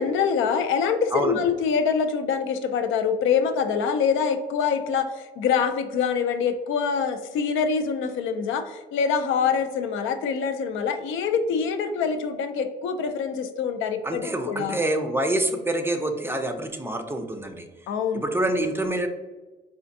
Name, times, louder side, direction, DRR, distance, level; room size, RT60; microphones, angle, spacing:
voice 1, 0.0-14.8 17.9-18.2, left 6 dB, 80° left, 8 dB, 0.4 m, -25 dB
voice 2, 1.1-1.4 14.0-17.7 18.1-19.1, right 1 dB, 10° right, 5 dB, 0.4 m, -26 dB
4.3 x 2.5 x 2.5 m, 1.2 s
cardioid pair, 90°, 20 cm